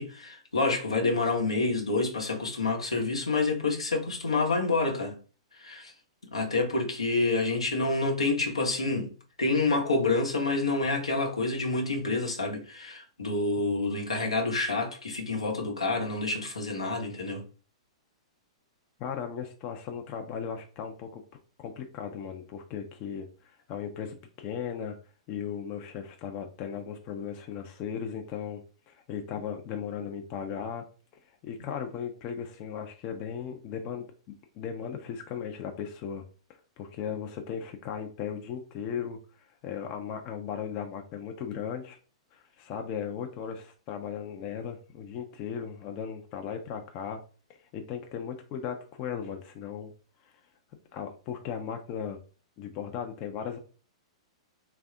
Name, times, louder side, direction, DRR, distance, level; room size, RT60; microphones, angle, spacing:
voice 1, 0.0-5.2 5.6-5.9 6.3-9.1 9.4-17.4, left 3 dB, 85° left, 0.9 m, -28 dB
voice 2, 19.0-21.2 21.6-25.0 25.3-30.9 31.3-36.3 36.8-39.2 39.6-42.0 42.3-47.2 47.7-49.9 50.2-50.3 50.9-52.2 52.6-53.6, left 7 dB, 40° left, 0.5 m, -37 dB
3.3 x 2.3 x 3.6 m
figure-of-eight pair, 105°, 3 cm